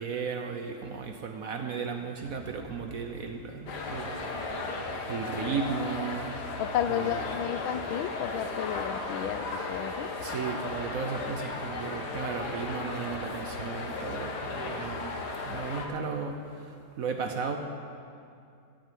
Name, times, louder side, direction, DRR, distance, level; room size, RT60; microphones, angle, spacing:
voice 1, 0.0-4.3 5.1-6.3 6.9-7.4 10.2-15.1 15.5-16.4 17.0-17.6, right 5 dB, 60° right, 5 dB, 1.0 m, -35 dB
sound 1, 2.2-6.6, left 3 dB, 40° left, 3.2 m, -54 dB
sound 2, 3.7-15.9, left 3 dB, 60° left, 1.7 m, -35 dB
voice 2, 6.6-10.1, left 10 dB, 90° left, 13 dB, 1.4 m, -32 dB
12.5 x 9.2 x 7.7 m, 2.4 s
omnidirectional pair, 2.1 m